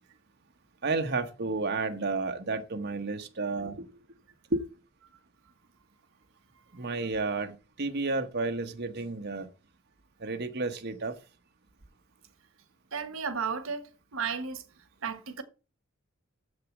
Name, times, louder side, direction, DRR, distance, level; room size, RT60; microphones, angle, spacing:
voice 1, 0.8-3.7 4.5-4.6 6.8-9.5 10.2-11.1, right 3 dB, 55° right, 1.1 m, -31 dB
voice 2, 12.9-14.6 15.0-15.4, right 6 dB, 90° right, 1.2 m, -34 dB
7.3 x 6.5 x 7.2 m
head